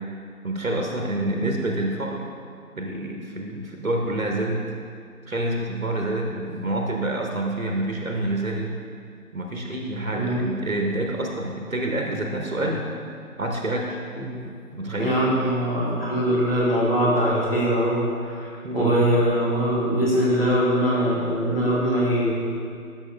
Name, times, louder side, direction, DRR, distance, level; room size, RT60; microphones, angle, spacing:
voice 1, 0.4-2.2 2.8-4.6 5.3-8.7 9.3-12.9 13.4-14.0 14.7-15.2 18.6-19.0, right 1 dB, 65° right, 1 dB, 0.9 m, -27 dB
voice 2, 15.0-22.3, equal, 40° left, -6 dB, 1.7 m, -22 dB
11.0 x 5.9 x 2.3 m, 2.4 s
figure-of-eight pair, 170°, 44 cm